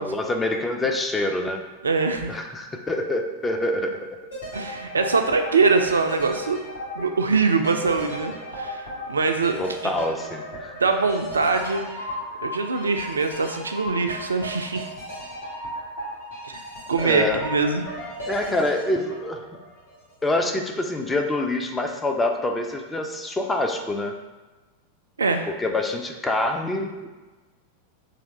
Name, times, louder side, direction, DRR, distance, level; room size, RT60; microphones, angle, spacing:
voice 1, 0.0-1.6 2.3-4.2 9.6-10.7 17.0-17.4 18.3-19.4 20.2-24.1 25.5-27.2, left 2 dB, 10° left, 3 dB, 0.4 m, -26 dB
voice 2, 1.8-2.3 4.5-6.6 6.9-9.9 10.8-12.1 12.4-14.9 16.4-16.6 16.9-17.8 25.2-25.5, right 4 dB, 75° right, 6 dB, 0.3 m, -23 dB
sound 1, 4.3-20.2 20.5-20.6, equal, 70° left, 1.4 m, -36 dB
3.4 x 2.5 x 4.0 m, 1.2 s
figure-of-eight pair, 90°, 0 cm